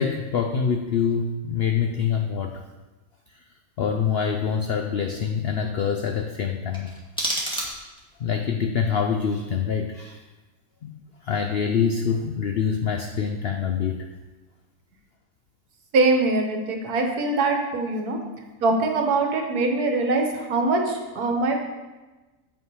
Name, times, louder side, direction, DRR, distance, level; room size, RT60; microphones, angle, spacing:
voice 1, 0.0-2.6 3.8-6.9 8.2-10.2 10.8-14.1 17.8-17.9, left 6 dB, 75° left, 4 dB, 0.5 m, -25 dB
sound 1, 6.7-8.2, right 1 dB, 5° left, 1.4 m, -30 dB
voice 2, 15.9-18.2 18.6-21.7, right 3 dB, 75° right, 3 dB, 1.6 m, -23 dB
7.6 x 5.5 x 4.8 m, 1.2 s
omnidirectional pair, 1.7 m